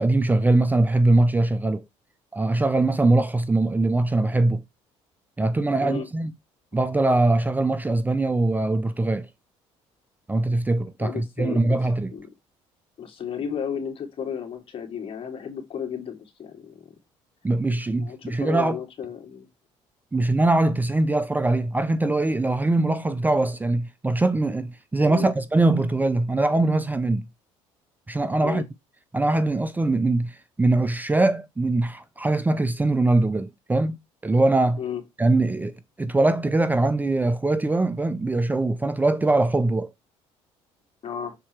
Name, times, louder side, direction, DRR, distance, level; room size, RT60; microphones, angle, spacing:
voice 1, 0.0-1.8 2.3-4.6 5.4-6.3 6.7-9.3 10.3-12.1 17.4-18.8 20.1-27.2 28.1-28.7 29.1-34.0 34.2-34.8 35.2-39.9, right 2 dB, 15° right, 0.6 m, -22 dB
voice 2, 11.0-11.8 12.1-12.3 13.0-16.9 18.0-19.5 25.0-25.3 28.4-28.6 34.8-35.0 41.0-41.3, left 7 dB, 50° left, 2.6 m, -33 dB
6.8 x 4.2 x 4.4 m
supercardioid pair, 90°, 12 cm